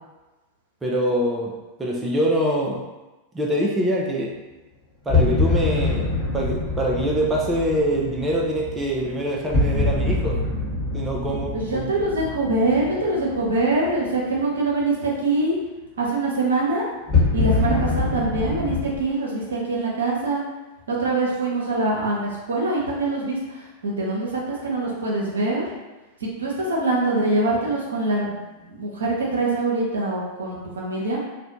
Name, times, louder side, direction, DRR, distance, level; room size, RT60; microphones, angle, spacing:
voice 1, 0.8-2.8 3.3-4.3 5.1-10.4 10.9-11.9, right 1 dB, 15° right, -3 dB, 0.4 m, -24 dB
sound 1, 5.1-14.1 17.1-18.9, left 3 dB, 25° left, 1.1 m, -25 dB
voice 2, 11.5-15.5 16.0-16.9 17.3-20.4 20.9-25.7 26.2-31.2, right 2 dB, 70° right, -3 dB, 0.7 m, -24 dB
2.5 x 2.1 x 2.8 m, 1.1 s
figure-of-eight pair, 90°, 0 cm